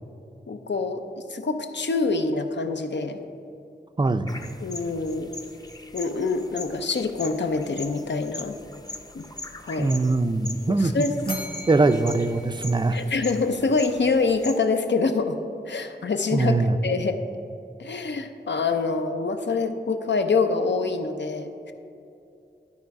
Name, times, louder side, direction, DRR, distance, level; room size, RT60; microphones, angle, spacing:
voice 1, 0.5-1.0 1.3-3.2 4.6-5.3 5.9-8.6 9.1-9.2 9.6-9.9 10.8-11.2 12.9-15.4 15.7-16.6 16.8-17.2 17.8-21.7, left 4 dB, 80° left, 7 dB, 0.6 m, -25 dB
voice 2, 4.0-4.4 9.8-10.9 11.3-11.4 11.7-13.0 16.3-16.8, right 3 dB, 25° right, 10 dB, 0.4 m, -22 dB
sound 1, 4.3-14.6, left 1 dB, 20° left, 0.6 m, -41 dB
Bell, 11.2-13.5, left 1 dB, 55° left, 1.5 m, -40 dB
11.5 x 4.8 x 4.7 m, 2.7 s
wide cardioid pair, 60°, 18 cm